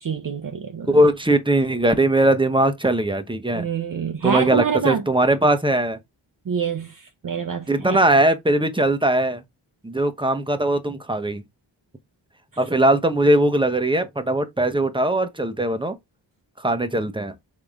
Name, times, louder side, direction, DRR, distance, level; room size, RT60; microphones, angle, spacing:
voice 1, 0.0-1.0 3.5-5.0 6.5-8.0, right 6 dB, 45° right, 0.7 m, -26 dB
voice 2, 0.9-3.7 4.2-6.0 7.7-9.4 9.8-11.4 12.6-16.0 16.6-17.3, right 1 dB, 10° right, 0.9 m, -20 dB
3.8 x 3.6 x 3.5 m
cardioid pair, 45°, 46 cm